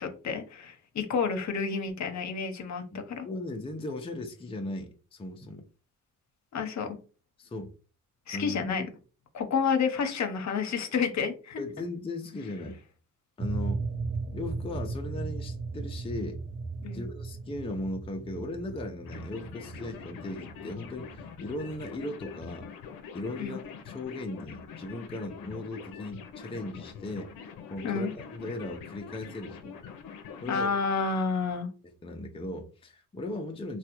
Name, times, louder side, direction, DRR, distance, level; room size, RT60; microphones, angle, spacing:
voice 1, 0.0-3.3 6.5-7.0 8.3-8.8 9.3-11.6 16.8-17.1 23.4-23.6 27.8-28.1 30.5-31.7, left 5 dB, 55° left, 0.8 m, -30 dB
voice 2, 2.9-5.6 7.4-7.7 8.3-8.7 11.6-12.8 13.4-13.8 14.3-16.4 16.9-22.7 23.1-27.3 27.7-29.8 30.4-30.7 32.0-33.8, left 2 dB, 15° left, 0.5 m, -37 dB
sound 1, 13.4-21.9, right 4 dB, 35° right, 0.6 m, -37 dB
sound 2, 19.0-30.6, left 6 dB, 85° left, 0.6 m, -45 dB
3.3 x 2.3 x 2.9 m
cardioid pair, 75°, 33 cm